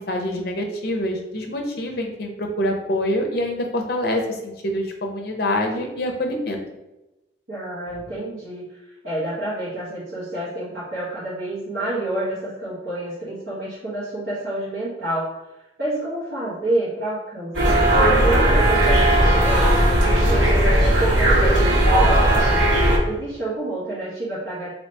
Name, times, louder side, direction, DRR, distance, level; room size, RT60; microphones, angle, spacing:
voice 1, 0.0-6.6, left 1 dB, 55° left, 2 dB, 0.6 m, -25 dB
voice 2, 7.5-15.4 15.8-22.7 23.0-24.7, right 1 dB, 55° right, -12 dB, 1.3 m, -29 dB
sound 1, 17.5-23.0, right 1 dB, 80° right, 1.5 m, -17 dB
2.9 x 2.8 x 3.3 m, 0.99 s
head